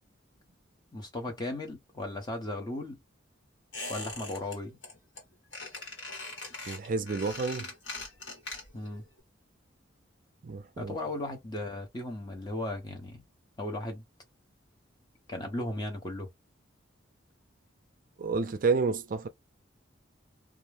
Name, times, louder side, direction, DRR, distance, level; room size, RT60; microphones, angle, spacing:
voice 1, 0.9-3.0 3.9-4.8 8.7-9.0 10.8-13.2 13.6-14.0 15.3-16.3, left 1 dB, 20° left, 0.8 m, -36 dB
Squeak, 3.7-4.6 4.8-5.2 5.5-8.9 9.2-9.3, left 3 dB, 65° left, 1.4 m, -41 dB
voice 2, 6.7-7.7 10.4-11.0 18.2-19.3, right 4 dB, 45° right, 0.4 m, -30 dB
2.4 x 2.1 x 3.2 m
head